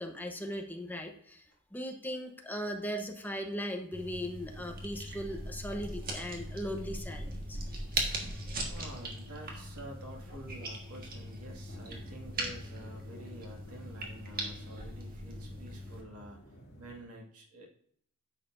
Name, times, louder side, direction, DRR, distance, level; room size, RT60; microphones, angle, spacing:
voice 1, 0.0-1.5 1.7-7.6, equal, 10° left, 4 dB, 0.9 m, -38 dB
sound 1, 3.9-16.0, right 2 dB, 45° right, 1.5 m, -40 dB
voice 2, 8.6-17.7, right 1 dB, 80° right, -1 dB, 2.1 m, -49 dB
sound 2, 11.7-17.0, equal, 50° left, 2.3 m, -54 dB
10.0 x 6.7 x 2.6 m, 0.63 s
head